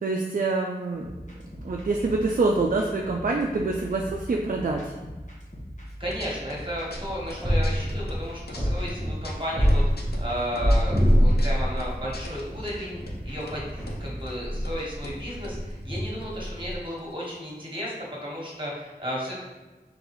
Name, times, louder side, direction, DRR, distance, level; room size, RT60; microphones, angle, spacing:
voice 1, 0.0-1.2 1.6-5.0, right 3 dB, 55° right, 0 dB, 0.4 m, -26 dB
sound 1, 1.0-15.4, equal, 45° left, 1.1 m, -41 dB
sound 2, 5.9-6.7 6.9-8.6 8.9-12.8 13.1-13.2 13.4-14.0 14.3-14.4 14.6-14.8 15.0-16.7 17.0-17.1 17.2-17.6, left 2 dB, 70° left, 0.6 m, -44 dB
voice 2, 6.0-19.3, equal, 30° right, -4 dB, 1.4 m, -34 dB
sound 3, 6.9-8.2 8.5-12.5 12.9-15.1 15.3-16.7, equal, ahead, 0.9 m, -25 dB
3.8 x 3.5 x 3.0 m, 1.2 s
wide cardioid pair, 45°, 17 cm